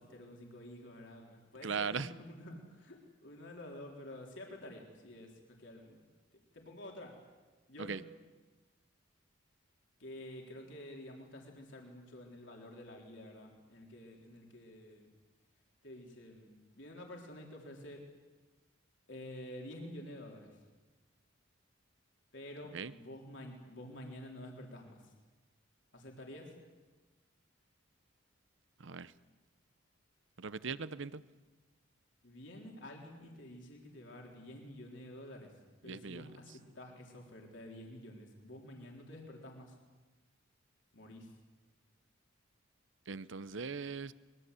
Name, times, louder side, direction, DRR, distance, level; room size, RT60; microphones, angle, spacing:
voice 1, 0.0-6.0 6.5-7.2 7.7-8.0 10.0-15.1 15.8-18.1 19.1-20.6 22.3-25.1 25.9-26.6 32.2-39.8 40.9-41.3, left 1 dB, 65° left, 0 dB, 3.8 m, -49 dB
voice 2, 1.6-2.1 7.8-8.0 22.7-22.9 28.8-29.1 30.4-31.2 35.8-36.3 43.1-44.1, right 5 dB, 70° right, 16 dB, 0.8 m, -39 dB
24.0 x 22.0 x 8.3 m, 1.2 s
head